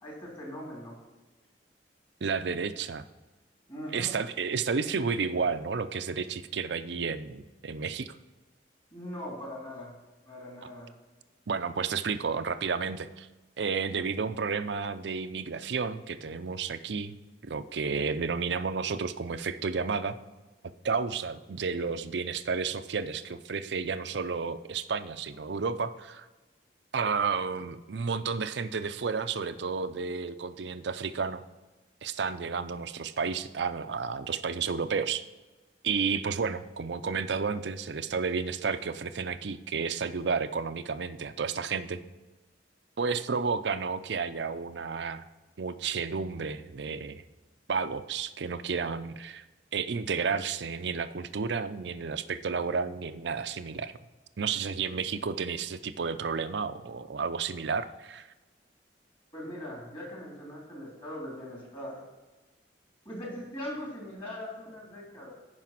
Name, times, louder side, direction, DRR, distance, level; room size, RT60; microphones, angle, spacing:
voice 1, 0.0-1.0 3.7-4.1 8.9-9.9 10.2-10.9 59.3-62.0 63.0-65.3, left 1 dB, 30° left, -3 dB, 3.3 m, -40 dB
voice 2, 2.2-3.0 3.9-8.1 11.5-13.3 13.6-17.1 17.4-20.2 20.8-26.3 26.9-31.4 32.0-35.2 35.8-42.0 43.0-45.2 45.6-47.2 47.7-49.4 49.7-53.9 54.4-58.3, right 5 dB, 75° right, 12 dB, 0.5 m, -31 dB
11.0 x 5.0 x 5.9 m, 1.2 s
head